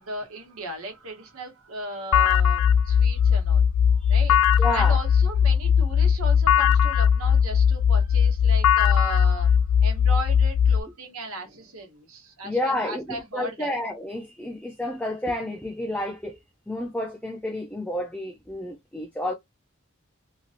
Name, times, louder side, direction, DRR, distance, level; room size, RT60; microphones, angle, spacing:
voice 1, 0.0-3.7 4.1-9.5 9.8-13.7, right 2 dB, 85° right, 1.1 m, -36 dB
sound 1, 2.1-10.8, left 7 dB, 85° left, 0.3 m, -19 dB
voice 2, 4.6-5.0 12.4-19.3, left 1 dB, 5° left, 0.4 m, -30 dB
3.0 x 2.6 x 2.5 m
head